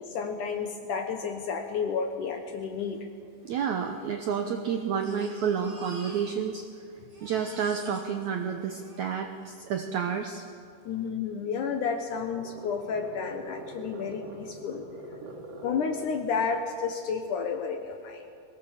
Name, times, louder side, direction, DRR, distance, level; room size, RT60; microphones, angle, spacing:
voice 1, 0.0-3.1 10.9-14.8 15.6-18.3, left 6 dB, 65° left, 5 dB, 2.2 m, -31 dB
Crying sobbing, 2.6-2.7 2.9-3.0 3.8-6.7 7.0-9.5 10.4-10.5 10.8-10.9, right 1 dB, 25° right, 4.7 m, -50 dB
voice 2, 3.4-6.6 7.2-10.4 15.2-15.4, right 7 dB, 75° right, 5 dB, 1.8 m, -30 dB
sound 1, 11.4-16.3, right 1 dB, 45° right, 3.0 m, -44 dB
22.0 x 18.5 x 7.3 m, 2.4 s
omnidirectional pair, 4.5 m